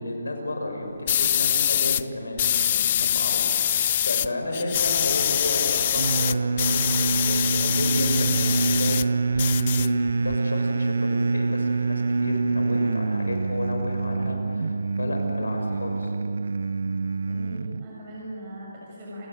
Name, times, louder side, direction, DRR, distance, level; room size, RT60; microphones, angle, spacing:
voice 1, 0.0-16.1, left 2 dB, 90° left, 2 dB, 6.7 m, -32 dB
sound 1, 1.1-2.0 2.4-4.3 4.5-9.1 9.4-10.4, left 10 dB, 35° left, 0.5 m, -24 dB
sound 2, 6.0-17.9, right 4 dB, 75° right, 0.5 m, -26 dB
voice 2, 17.3-19.3, right 1 dB, 30° right, -5 dB, 6.8 m, -39 dB
28.5 x 17.5 x 9.2 m, 2.7 s
hypercardioid pair, 160°, 0 cm